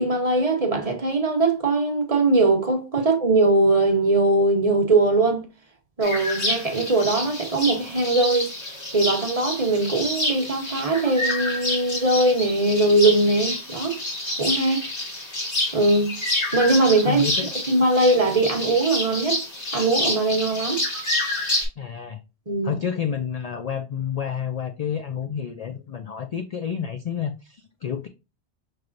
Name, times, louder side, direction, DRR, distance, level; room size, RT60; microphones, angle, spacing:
voice 1, 0.0-5.4 6.0-8.5 8.9-14.0 14.4-14.9 15.7-16.1 16.5-17.2 17.7-19.4 19.7-20.8 22.5-22.7, right 2 dB, 35° right, 1.0 m, -21 dB
sound 1, 6.0-21.7, left 1 dB, 80° left, 2.2 m, -28 dB
voice 2, 17.1-17.5 21.8-22.2 22.6-28.1, left 7 dB, 60° left, 0.4 m, -29 dB
5.9 x 3.2 x 2.5 m
omnidirectional pair, 1.1 m